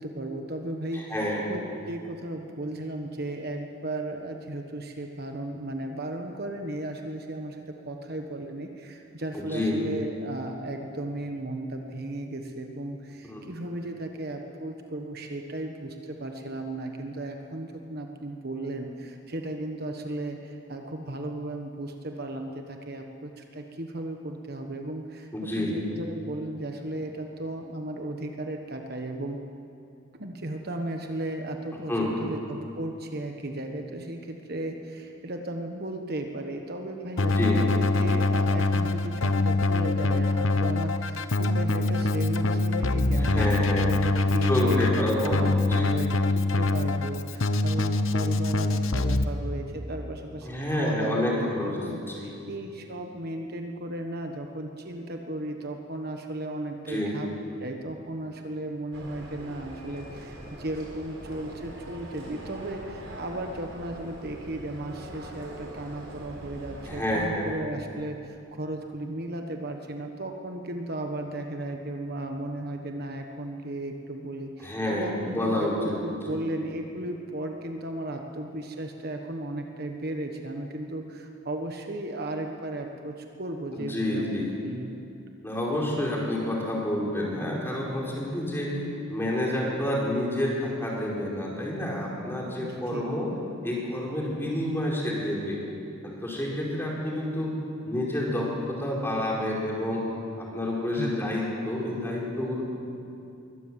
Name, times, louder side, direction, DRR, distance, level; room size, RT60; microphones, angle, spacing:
voice 1, 0.0-1.2 1.5-1.6 1.9-25.3 25.5-29.4 30.2-57.3 57.6-85.0 92.6-93.2 100.9-101.3, right 1 dB, 50° right, 4 dB, 1.4 m, -35 dB
voice 2, 0.9-1.4 9.3-9.8 13.3-13.4 25.3-25.7 31.9-32.1 37.2-37.6 43.2-43.9 44.4-45.9 50.4-51.8 52.1-52.3 56.9-57.1 66.9-67.6 74.6-76.0 76.3-76.4 83.7-84.5 85.4-88.8 89.1-93.3 93.6-95.6 96.0-97.5 97.8-100.1 100.4-102.6, left 1 dB, 10° left, -4 dB, 4.6 m, -29 dB
Keyboard (musical), 37.2-49.2, left 2 dB, 75° left, 1.0 m, -24 dB
sound 1, 58.9-67.3, right 1 dB, 85° right, 4.5 m, -42 dB
23.0 x 17.5 x 7.6 m, 2.6 s
head